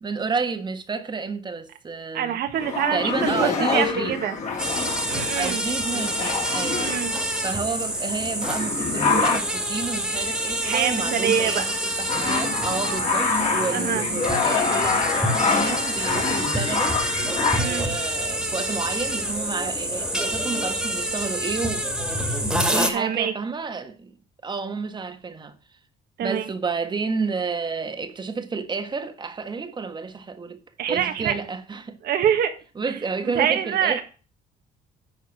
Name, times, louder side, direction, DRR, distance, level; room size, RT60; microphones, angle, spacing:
voice 1, 0.0-2.4 2.9-4.2 5.3-6.9 7.4-21.9 22.7-24.1 24.4-25.5 26.2-30.6 30.9-32.0 32.8-34.0, right 4 dB, 25° right, 1.5 m, -30 dB
voice 2, 2.1-4.4 5.1-5.6 6.8-7.1 10.6-11.7 13.7-14.1 17.5-17.9 22.9-23.3 26.2-26.5 30.8-31.3 32.0-32.5 33.2-34.0, right 9 dB, 65° right, 1.7 m, -25 dB
sound 1, 2.5-7.6 8.1-8.2 8.4-9.7 10.4-10.8 11.1-17.9 18.7-18.8 19.1-19.9, left 4 dB, 45° left, 3.3 m, -26 dB
sound 2, 4.6-22.9, right 1 dB, 5° right, 2.2 m, -27 dB
11.0 x 4.6 x 7.5 m
cardioid pair, 110°, 17 cm